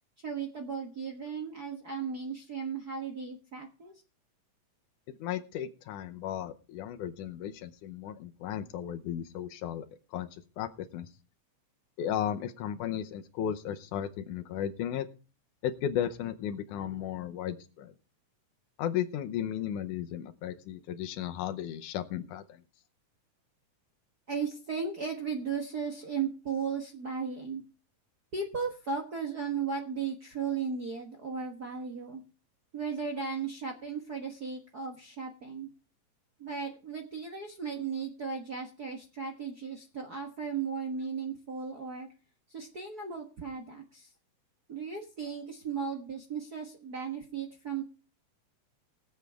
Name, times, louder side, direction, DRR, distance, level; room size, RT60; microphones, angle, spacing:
voice 1, 0.2-3.9 24.3-27.6 28.3-32.2 32.7-35.7 36.4-42.1 42.5-44.1 44.7-47.8, right 5 dB, 50° right, 3 dB, 1.2 m, -36 dB
voice 2, 5.2-9.9 10.1-11.1 12.0-15.1 15.6-17.9 18.8-22.6, left 10 dB, 75° left, 9 dB, 2.3 m, -35 dB
20.5 x 8.0 x 3.4 m, 0.35 s
omnidirectional pair, 3.6 m